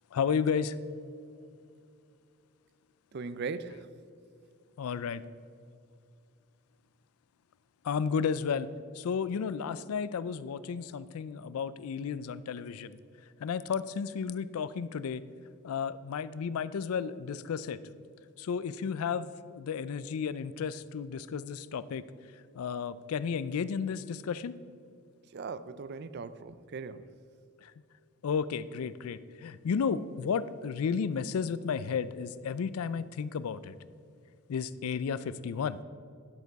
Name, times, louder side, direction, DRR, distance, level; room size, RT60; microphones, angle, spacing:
voice 1, 0.1-0.8 4.8-5.2 7.8-8.7 8.9-13.0 13.4-15.2 15.6-17.8 18.4-22.0 22.5-24.5 27.6-27.7 28.2-33.7 34.5-35.8, left 6 dB, 85° left, 16 dB, 0.4 m, -33 dB
voice 2, 3.1-3.9 25.3-27.1, right 4 dB, 50° right, 14 dB, 0.4 m, -39 dB
10.5 x 8.0 x 4.1 m, 2.4 s
head